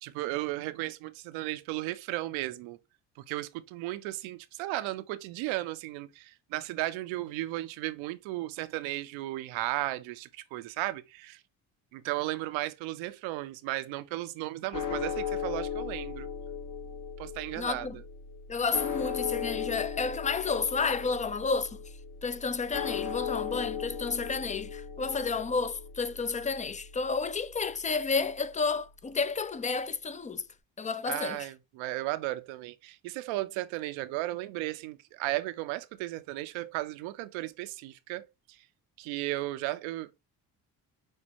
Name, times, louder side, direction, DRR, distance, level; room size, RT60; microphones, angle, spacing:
voice 1, 0.0-2.8 3.2-11.4 11.9-16.3 17.2-17.9 31.1-38.6 39.0-40.2, right 17 dB, 80° right, 0.6 m, -35 dB
sound 1, 14.7-29.0, left 7 dB, 45° left, 1.1 m, -38 dB
voice 2, 17.6-18.0 18.5-21.8 22.2-30.5 30.8-31.5, left 4 dB, 15° left, 0.4 m, -31 dB
6.3 x 2.2 x 2.8 m
hypercardioid pair, 55°, 46 cm